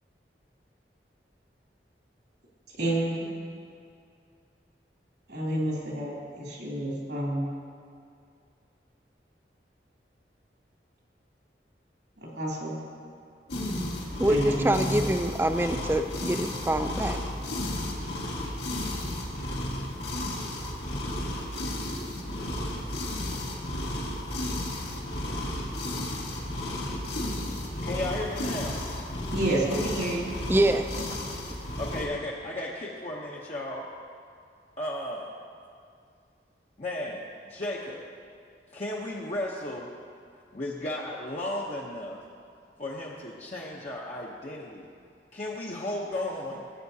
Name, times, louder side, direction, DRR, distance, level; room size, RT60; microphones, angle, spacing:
voice 1, 2.8-3.3 5.3-7.4 12.2-12.8 14.1-15.1 29.3-30.3, right 1 dB, 80° right, -5 dB, 3.0 m, -29 dB
sound 1, 13.5-32.1, left 1 dB, 75° left, 1.9 m, -33 dB
voice 2, 14.2-17.2 30.5-31.1, right 1 dB, 15° right, 8 dB, 0.4 m, -25 dB
voice 3, 27.8-28.8 31.8-33.9 34.8-35.3 36.8-38.0 38.7-39.9 40.5-42.2 42.8-44.9 45.3-46.6, left 1 dB, 40° left, -4 dB, 0.8 m, -34 dB
18.0 x 8.9 x 2.8 m, 2.3 s
head